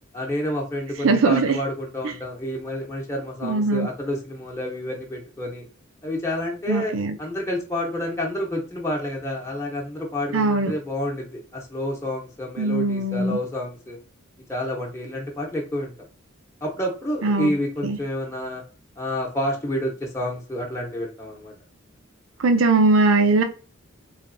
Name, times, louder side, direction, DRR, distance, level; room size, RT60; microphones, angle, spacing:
voice 1, 0.1-5.6 6.0-6.9 7.2-14.0 14.5-15.9 16.6-18.6 19.0-21.5, left 1 dB, 15° left, -1 dB, 0.8 m, -29 dB
voice 2, 1.0-1.6 3.4-3.9 6.7-7.2 10.3-10.7 12.6-13.4 17.2-17.5 17.8-18.0 22.4-23.4, right 3 dB, 80° right, 6 dB, 0.6 m, -20 dB
3.8 x 3.2 x 2.6 m, 0.36 s
head